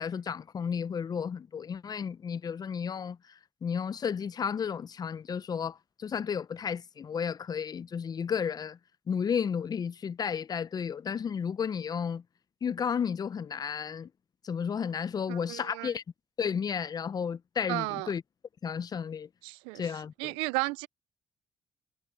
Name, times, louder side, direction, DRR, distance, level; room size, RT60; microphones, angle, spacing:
voice 1, 0.0-3.2 3.6-8.8 9.1-12.2 12.6-14.1 14.4-16.0 16.4-18.2 18.6-19.3 19.7-20.3, left 7 dB, 50° left, 0.8 m, -32 dB
voice 2, 15.3-15.9 17.7-18.1 19.4-19.9 20.2-20.9, right 25 dB, 85° right, 0.6 m, -33 dB
hypercardioid pair, 50°, 9 cm